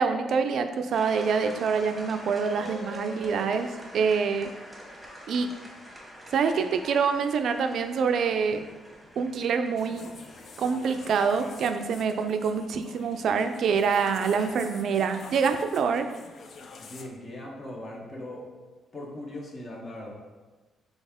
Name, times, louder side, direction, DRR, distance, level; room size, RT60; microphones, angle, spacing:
voice 1, 0.0-3.7 3.9-4.5 5.3-5.5 6.3-8.6 9.2-10.1 10.6-16.1, right 5 dB, 65° right, 7 dB, 0.4 m, -26 dB
sound 1, 0.9-12.6, right 1 dB, 5° right, 1.2 m, -45 dB
sound 2, 9.8-17.1, left 4 dB, 55° left, 0.4 m, -46 dB
voice 2, 16.8-18.5 18.9-20.1, left 1 dB, 40° left, -2 dB, 1.1 m, -39 dB
4.1 x 3.4 x 3.6 m, 1.3 s
cardioid pair, 90°, 0 cm